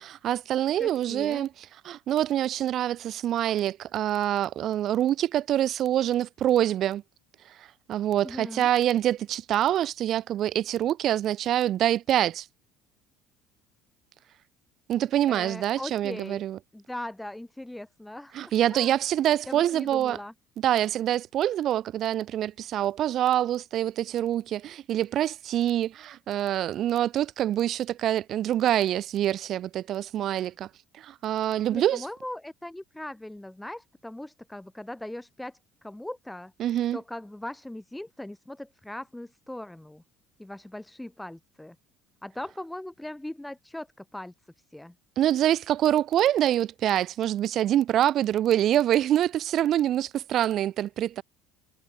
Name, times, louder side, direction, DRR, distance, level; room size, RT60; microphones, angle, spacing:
voice 1, 0.0-1.5 1.8-7.0 7.6-12.4 14.9-16.6 18.3-20.2 20.6-30.7 31.0-32.1 36.6-37.0 45.2-51.2, right 12 dB, 40° right, 1.2 m, -25 dB
voice 2, 0.8-1.5 8.2-8.7 15.3-16.4 16.7-18.9 19.5-20.3 31.7-36.5 36.9-40.0 40.4-41.8 42.2-44.3 44.7-44.9, left 1 dB, 5° left, 3.3 m, -39 dB
cardioid pair, 170°, 0 cm